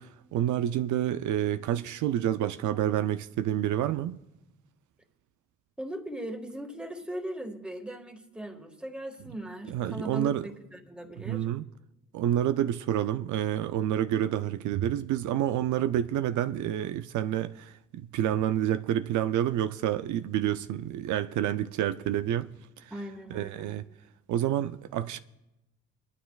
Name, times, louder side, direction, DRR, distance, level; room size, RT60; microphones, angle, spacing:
voice 1, 0.0-4.2 9.7-10.5 11.2-11.6 12.1-22.5 22.8-22.9 23.3-23.9 24.3-25.2, right 11 dB, 75° right, 0.5 m, -28 dB
voice 2, 5.8-11.5 22.9-23.8, right 1 dB, 5° right, 1.7 m, -39 dB
21.5 x 11.5 x 2.4 m
cardioid pair, 90°, 30 cm